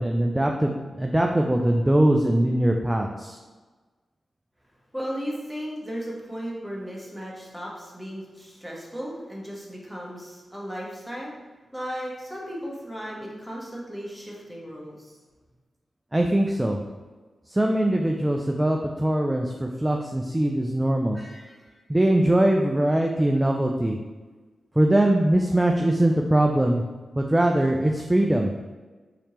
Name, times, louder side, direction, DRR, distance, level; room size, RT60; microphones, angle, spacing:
voice 1, 0.0-3.4 16.1-16.8 17.5-21.5 21.9-24.0 24.8-26.8 27.2-28.5, right 1 dB, 15° right, 1 dB, 0.3 m, -22 dB
voice 2, 4.9-11.3 11.7-15.2, equal, ahead, -4 dB, 1.0 m, -35 dB
3.3 x 2.8 x 2.9 m, 1.3 s
cardioid pair, 55°, 0 cm